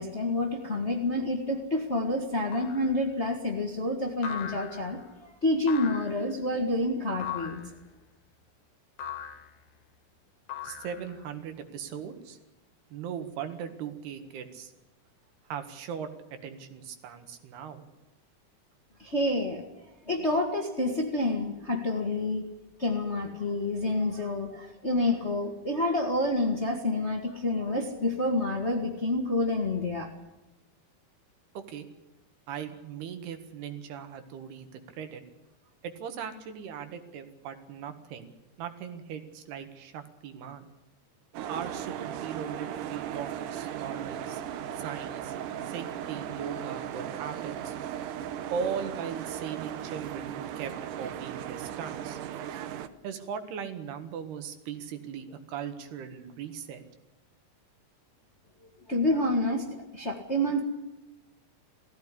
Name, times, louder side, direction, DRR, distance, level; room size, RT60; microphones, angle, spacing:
voice 1, 0.0-5.0 5.4-7.6 19.0-19.6 20.1-22.4 22.8-30.1 58.9-60.6, left 1 dB, 30° left, 2 dB, 1.3 m, -28 dB
sound 1, 2.5-2.9 4.2-5.0 5.7-6.3 7.2-7.7 9.0-9.5 10.5-11.2, left 8 dB, 80° left, 3.5 m, -39 dB
voice 2, 10.6-12.4 12.9-14.7 15.5-17.9 31.6-31.9 32.5-35.2 35.8-38.3 38.6-40.7 41.5-44.4 44.8-45.3 45.7-47.7 48.5-52.2 53.0-56.8, right 7 dB, 85° right, 8 dB, 3.8 m, -39 dB
sound 2, 41.3-52.9, right 10 dB, 70° right, 2.2 m, -37 dB
18.5 x 15.5 x 10.0 m, 0.99 s
omnidirectional pair, 4.5 m